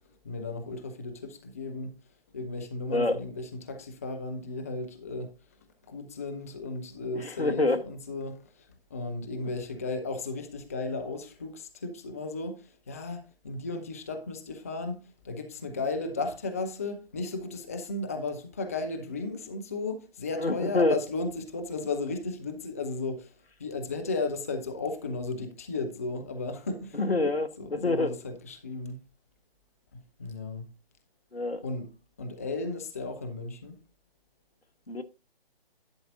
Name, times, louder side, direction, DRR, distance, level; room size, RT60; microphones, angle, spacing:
voice 1, 0.2-2.0 2.3-5.3 5.8-27.0 27.6-29.0 29.9-30.7 31.6-31.9 32.2-33.8, left 3 dB, 15° left, 0.5 m, -35 dB
voice 2, 7.2-7.8 20.4-21.0 27.0-28.1 31.3-31.6 34.9-35.0, left 2 dB, 80° left, 1.2 m, -26 dB
11.5 x 7.3 x 2.5 m
figure-of-eight pair, 140°, 30 cm